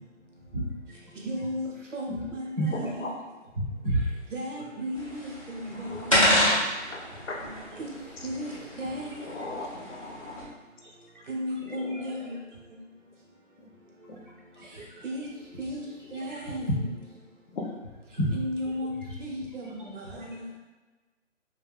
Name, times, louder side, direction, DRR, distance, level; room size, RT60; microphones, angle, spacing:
voice 1, 0.5-1.0 2.1-3.1 3.5-4.0 4.6-4.7 5.9-6.0 7.7-7.8 8.8-8.9 10.8-11.2 11.7-12.4 14.5-15.0 16.3-16.8 18.1-18.3 19.0-19.2 19.6-20.4, right 1 dB, 40° right, -4 dB, 0.6 m, -33 dB
voice 2, 1.2-1.7 1.9-3.0 4.3-6.1 7.8-7.9 8.2-8.5 8.8-9.3 11.3-12.4 15.0-15.3 15.6-15.8 16.1-16.7 18.3-20.0 20.3-20.4, equal, 70° right, -2 dB, 0.9 m, -34 dB
sound 1, 4.9-10.4, left 1 dB, 25° left, 0.5 m, -29 dB
voice 3, 9.2-10.5 11.8-11.9 14.1-14.2 17.5-17.7, left 3 dB, 65° left, 1 dB, 0.7 m, -37 dB
2.2 x 2.2 x 3.4 m, 1.2 s
hypercardioid pair, 170°, 39 cm